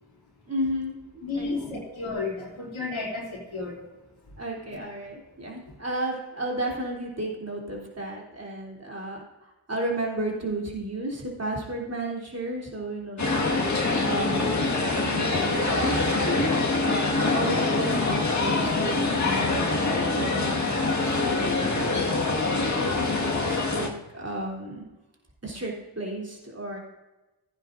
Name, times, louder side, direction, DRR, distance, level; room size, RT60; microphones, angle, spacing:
voice 1, 0.5-1.8 4.4-9.2 9.7-14.7 15.0-16.5 16.8-19.6 20.1-22.1 22.6-24.8 25.4-26.8, right 1 dB, 30° right, -2 dB, 3.4 m, -33 dB
voice 2, 1.2-3.8, left 3 dB, 85° left, -7 dB, 3.2 m, -32 dB
sound 1, 13.2-23.9, left 3 dB, 35° left, 1.8 m, -25 dB
16.5 x 9.6 x 2.6 m, 1.1 s
cardioid pair, 50°, 47 cm